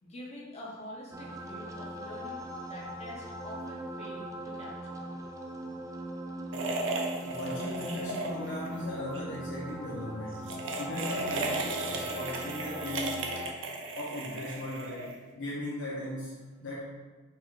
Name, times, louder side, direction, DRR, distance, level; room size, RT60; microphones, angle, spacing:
voice 1, 0.0-5.0, left 1 dB, 35° left, -5 dB, 1.1 m, -46 dB
sound 1, 1.1-13.5, right 1 dB, 15° right, 0.4 m, -40 dB
sound 2, 6.5-8.7 9.0-9.2 10.3-15.3, right 2 dB, 75° right, 0.6 m, -35 dB
voice 2, 7.2-13.3 14.0-16.8, left 1 dB, 80° left, -7 dB, 0.8 m, -38 dB
4.5 x 2.4 x 4.7 m, 1.3 s
head